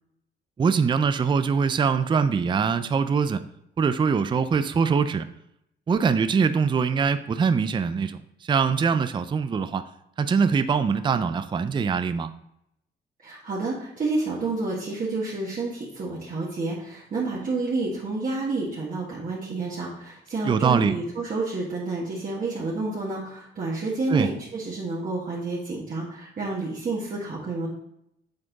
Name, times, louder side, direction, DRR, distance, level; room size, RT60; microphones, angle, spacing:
voice 1, 0.6-3.4 3.8-5.3 5.9-9.9 10.2-12.3 20.4-20.9 24.1-24.3, right 5 dB, 25° right, 11 dB, 0.4 m, -23 dB
voice 2, 13.2-27.7, right 3 dB, 45° right, -6 dB, 1.6 m, -29 dB
7.7 x 4.2 x 3.9 m, 0.78 s
cardioid pair, 90°, 20 cm